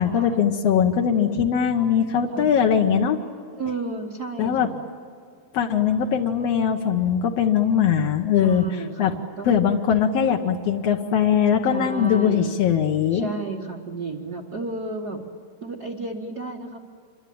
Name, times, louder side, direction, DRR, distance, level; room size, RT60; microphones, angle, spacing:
voice 1, 0.0-3.2 4.4-4.7 5.5-8.7 9.0-9.1 9.4-13.3, left 8 dB, 70° left, 2 dB, 1.5 m, -21 dB
voice 2, 3.5-4.8 8.4-9.5 11.7-12.6 13.1-15.2 15.6-16.8, right 3 dB, 75° right, -1 dB, 0.9 m, -32 dB
27.0 x 23.5 x 8.6 m, 2.2 s
omnidirectional pair, 4.5 m